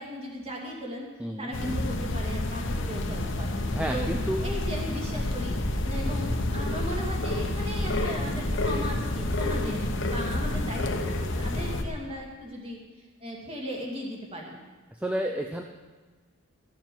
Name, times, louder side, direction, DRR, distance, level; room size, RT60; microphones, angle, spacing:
voice 1, 0.0-1.1 1.4-4.1 4.4-5.6 5.8-12.8 13.2-14.6, equal, 25° right, -1 dB, 2.2 m, -37 dB
voice 2, 1.2-1.5 3.7-4.5 15.0-15.6, right 1 dB, 5° right, 2 dB, 0.5 m, -30 dB
sound 1, 1.5-11.8, left 1 dB, 55° left, 1.1 m, -29 dB
12.5 x 7.4 x 7.6 m, 1.4 s
head